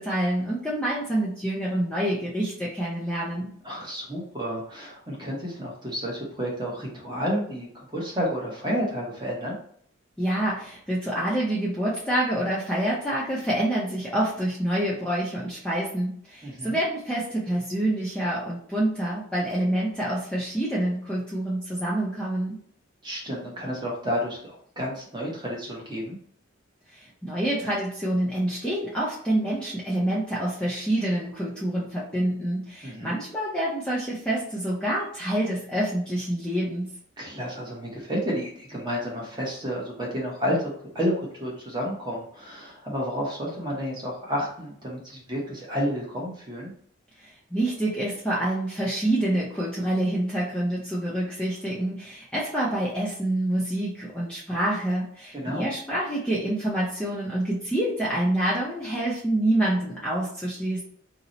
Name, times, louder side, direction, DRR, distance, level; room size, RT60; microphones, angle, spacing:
voice 1, 0.0-3.5 10.2-22.6 26.9-36.9 47.2-60.8, right 1 dB, 5° left, -7 dB, 0.5 m, -27 dB
voice 2, 3.6-9.6 16.4-16.8 23.0-26.2 32.8-33.2 37.2-46.7 55.3-55.7, equal, 20° right, -3 dB, 0.8 m, -31 dB
2.8 x 2.0 x 3.8 m, 0.62 s
head